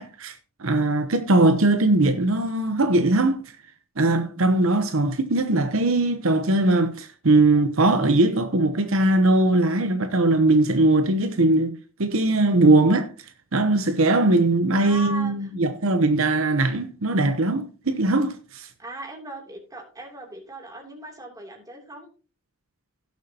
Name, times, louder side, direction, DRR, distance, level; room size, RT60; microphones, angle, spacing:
voice 1, 0.0-3.5 4.0-13.1 13.5-18.7, right 2 dB, 70° right, 0.9 m, -20 dB
voice 2, 14.7-15.5 18.8-22.1, right 1 dB, 15° right, 3.0 m, -38 dB
17.0 x 7.3 x 2.9 m
head